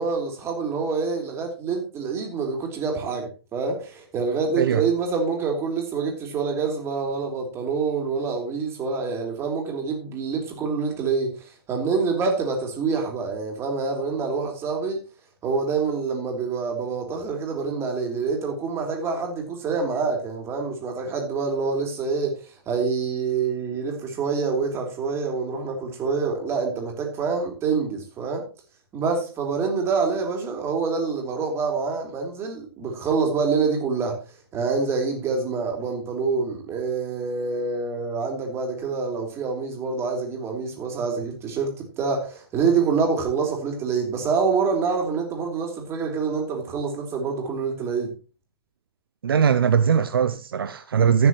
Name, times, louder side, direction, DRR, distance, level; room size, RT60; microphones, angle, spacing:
voice 1, 0.0-15.0 15.4-22.4 22.7-28.4 28.9-34.2 34.5-48.1, right 5 dB, 20° right, 3.1 m, -26 dB
voice 2, 49.2-51.3, right 7 dB, 60° right, 0.7 m, -20 dB
13.5 x 9.1 x 3.1 m
figure-of-eight pair, 120°, 13 cm